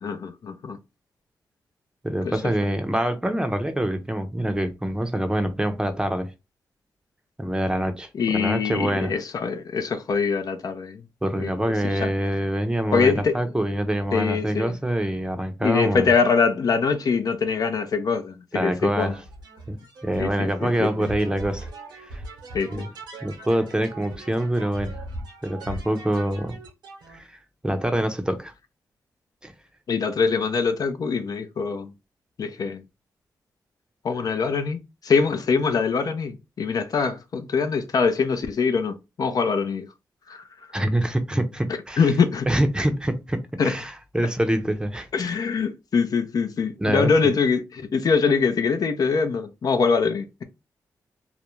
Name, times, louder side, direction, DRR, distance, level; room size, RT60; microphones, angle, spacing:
voice 1, 0.0-0.8 2.2-2.5 8.1-11.0 11.3-12.1 12.9-13.4 14.1-14.8 15.6-19.2 20.2-21.1 22.5-22.9 29.9-31.9 32.4-32.8 34.0-39.9 40.3-40.4 42.0-42.5 43.6-43.8 45.1-50.4, left 5 dB, 60° left, 0.4 m, -23 dB
voice 2, 2.0-6.3 7.4-9.1 11.2-16.1 18.5-19.2 19.7-21.7 22.0-22.2 22.7-22.9 23.2-24.9 25.4-26.6 27.1-27.4 27.6-28.5 29.4-29.5 40.7-42.0 42.5-45.3 46.8-47.1, right 1 dB, 10° right, 0.5 m, -25 dB
sound 1, 19.0-27.2, right 1 dB, 90° right, 0.8 m, -40 dB
2.4 x 2.1 x 3.0 m
cardioid pair, 65°, 7 cm